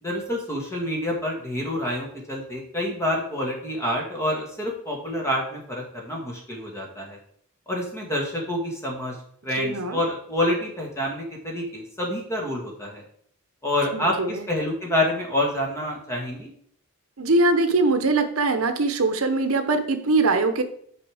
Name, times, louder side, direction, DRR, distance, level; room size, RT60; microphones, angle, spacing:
voice 1, 0.0-7.2 7.7-9.2 9.4-13.0 13.6-16.5, left 1 dB, 15° left, -1 dB, 1.7 m, -27 dB
voice 2, 9.6-10.0 13.9-14.5 17.2-20.6, right 3 dB, 75° right, 9 dB, 0.8 m, -22 dB
6.6 x 5.1 x 4.9 m, 0.63 s
head